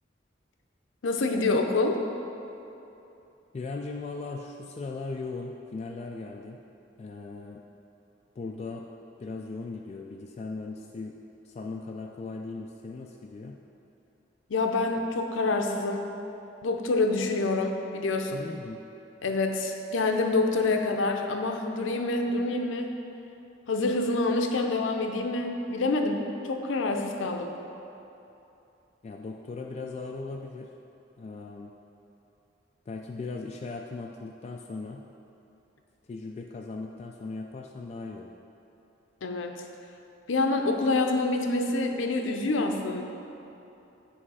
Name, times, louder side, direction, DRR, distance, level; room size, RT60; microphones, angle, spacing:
voice 1, 1.0-2.0 14.5-16.1 16.6-18.4 19.2-23.0 23.7-27.6 39.2-39.5 40.3-43.0, left 3 dB, 90° left, 4 dB, 0.6 m, -27 dB
voice 2, 3.5-6.6 7.0-7.6 8.4-8.9 9.2-11.1 11.4-13.6 18.3-18.8 29.0-30.7 31.2-31.7 32.9-35.0 36.1-38.3, left 3 dB, 35° left, 1 dB, 0.3 m, -38 dB
9.7 x 3.3 x 4.7 m, 2.9 s
head